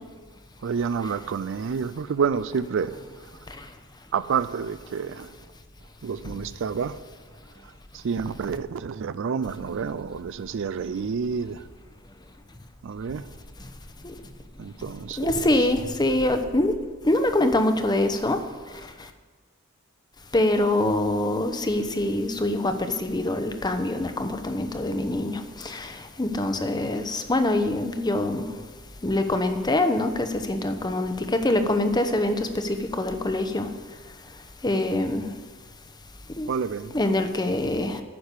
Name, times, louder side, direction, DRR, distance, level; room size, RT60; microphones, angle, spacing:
voice 1, 0.6-3.5 4.1-5.4 6.0-7.0 7.6-11.7 12.8-13.3 14.6-15.7 36.5-36.9, right 6 dB, 60° right, 0.4 m, -29 dB
voice 2, 15.2-16.7 17.0-18.4 20.3-28.4 29.0-33.7 34.6-35.2 36.4-36.5 36.9-38.0, left 1 dB, 20° left, 0.8 m, -24 dB
9.9 x 6.7 x 8.2 m
head